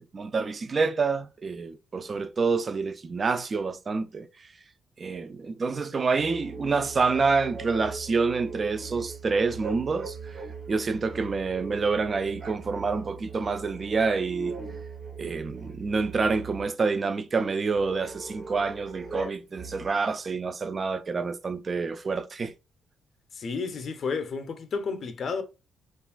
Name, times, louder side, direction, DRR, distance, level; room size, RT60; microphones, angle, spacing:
voice 1, 0.0-4.3 5.0-10.4 10.7-14.6 15.1-22.5, right 4 dB, 35° right, 0.3 m, -27 dB
sound 1, 6.2-16.7 17.7-20.0, right 4 dB, 55° right, 0.9 m, -40 dB
voice 2, 23.3-25.4, left 5 dB, 55° left, 0.5 m, -31 dB
2.9 x 2.4 x 2.4 m
cardioid pair, 90°, 0 cm